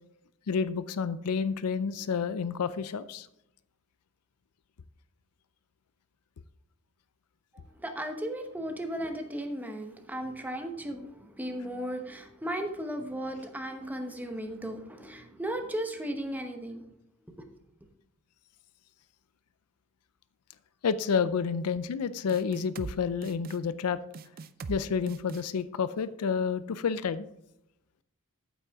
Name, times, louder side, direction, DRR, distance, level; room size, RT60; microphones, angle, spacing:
voice 1, 0.5-3.3 20.8-24.0 24.7-27.3, left 6 dB, 80° left, 0.5 m, -29 dB
voice 2, 7.8-16.8, right 1 dB, 10° right, 0.9 m, -36 dB
sound 1, 22.3-23.0 23.2-23.6 24.1-24.8 25.1-25.4, right 4 dB, 40° right, 0.4 m, -40 dB
8.7 x 8.2 x 3.5 m
head